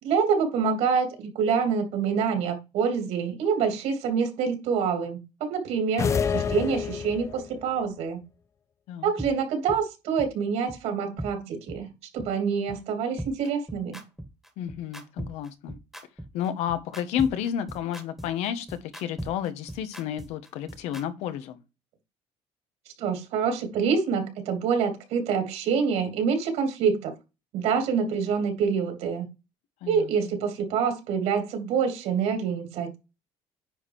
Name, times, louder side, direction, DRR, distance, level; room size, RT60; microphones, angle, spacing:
voice 1, 0.0-8.2 9.0-11.9 12.1-14.0 23.0-27.1 27.5-29.3 29.9-33.0, right 6 dB, 75° right, 3.1 m, -26 dB
sound 1, 6.0-7.5, left 6 dB, 25° left, 0.6 m, -27 dB
sound 2, 9.2-9.3 9.7-9.8 10.2-10.3 10.7-10.8 11.2-11.3 11.7-11.8 12.2-12.3 12.7-12.8 13.2-21.0, right 1 dB, ahead, 1.6 m, -38 dB
voice 2, 14.6-15.8 16.3-21.6 29.8-30.1, left 9 dB, 85° left, 1.4 m, -31 dB
9.9 x 4.5 x 4.9 m
cardioid pair, 165°, 11 cm